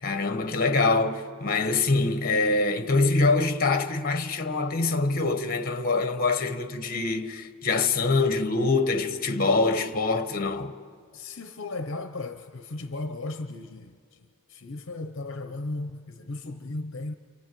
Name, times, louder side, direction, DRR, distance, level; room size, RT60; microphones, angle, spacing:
voice 1, 0.0-10.7, left 3 dB, 40° left, 1.3 m, -24 dB
voice 2, 11.1-14.0 14.5-17.1, left 2 dB, 60° left, 0.9 m, -35 dB
29.0 x 26.0 x 7.8 m
head